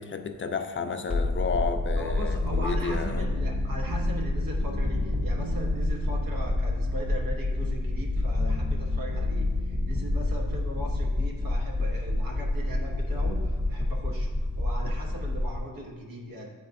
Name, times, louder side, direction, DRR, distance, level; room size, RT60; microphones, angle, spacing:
voice 1, 0.0-3.3, left 5 dB, 35° left, 6 dB, 0.4 m, -32 dB
sound 1, 0.8-10.5, right 1 dB, 55° right, 1.2 m, -40 dB
sound 2, 1.1-15.6, left 2 dB, 5° right, 0.6 m, -28 dB
voice 2, 2.0-14.3 14.6-16.5, equal, 80° right, -1 dB, 1.1 m, -39 dB
9.0 x 4.1 x 2.5 m, 1.5 s
wide cardioid pair, 100°, 34 cm